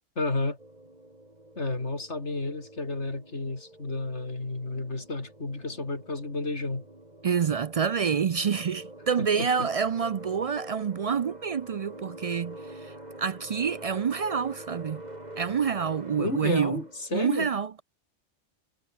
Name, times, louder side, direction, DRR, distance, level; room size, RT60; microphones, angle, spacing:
voice 1, 0.2-0.6 1.6-6.8 9.2-9.7 16.2-17.5, left 2 dB, 70° left, 4.2 m, -32 dB
sound 1, 0.6-17.1, right 1 dB, 35° right, 5.2 m, -46 dB
voice 2, 7.2-15.0 15.4-16.8 17.1-17.8, right 7 dB, 65° right, 0.3 m, -27 dB
omnidirectional pair, 1.2 m